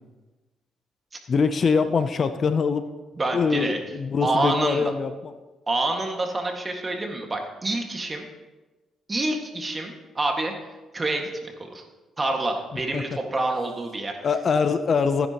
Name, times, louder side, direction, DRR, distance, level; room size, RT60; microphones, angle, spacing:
voice 1, 1.3-2.9 3.3-5.3 12.9-13.0 14.2-15.3, left 5 dB, 45° left, 10 dB, 0.6 m, -23 dB
voice 2, 3.2-3.8 4.2-4.9 5.7-8.2 9.1-10.5 10.9-11.3 11.7-11.8 12.2-14.1, right 2 dB, 25° right, 2 dB, 1.8 m, -27 dB
16.0 x 10.0 x 3.0 m, 1.2 s
cardioid pair, 90°, 0 cm